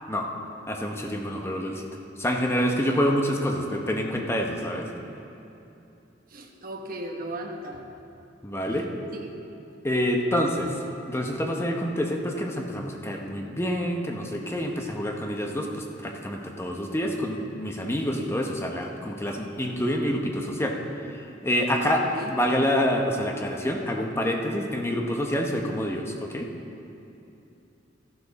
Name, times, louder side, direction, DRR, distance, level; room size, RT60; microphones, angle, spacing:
voice 1, 0.7-1.9 2.2-4.9 8.4-8.9 9.8-10.7 11.1-20.8 21.1-22.0 22.3-26.5, equal, 15° left, 1 dB, 0.9 m, -27 dB
voice 2, 6.3-7.9 9.1-9.4 21.8-22.4, right 1 dB, 50° right, 1 dB, 1.2 m, -37 dB
13.0 x 11.5 x 4.1 m, 2.8 s
head